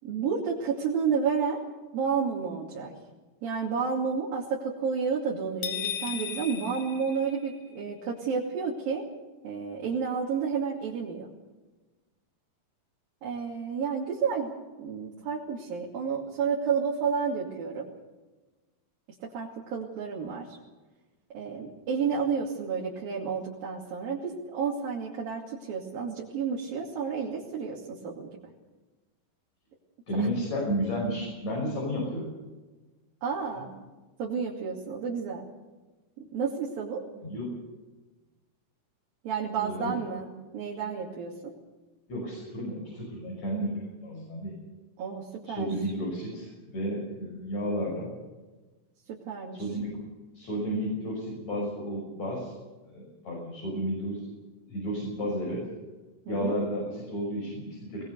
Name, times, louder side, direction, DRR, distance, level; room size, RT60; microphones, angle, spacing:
voice 1, 0.0-1.6 1.9-2.9 3.4-9.1 9.4-11.3 13.2-14.5 14.8-17.9 19.3-20.6 21.3-28.4 30.2-30.3 33.2-33.7 34.2-35.4 36.3-37.0 39.2-41.5 45.0-45.7 49.3-49.6 56.3-56.6, right 6 dB, 70° right, -4 dB, 4.3 m, -31 dB
sound 1, 5.6-7.8, left 10 dB, 70° left, 3.3 m, -36 dB
voice 2, 30.1-32.3 37.2-37.5 39.6-40.0 42.1-44.5 45.5-48.1 49.5-50.0 50.3-52.5 52.9-54.3 54.7-55.7 56.3-58.1, equal, 45° left, -3 dB, 7.4 m, -32 dB
21.5 x 20.5 x 6.9 m, 1.2 s
omnidirectional pair, 4.3 m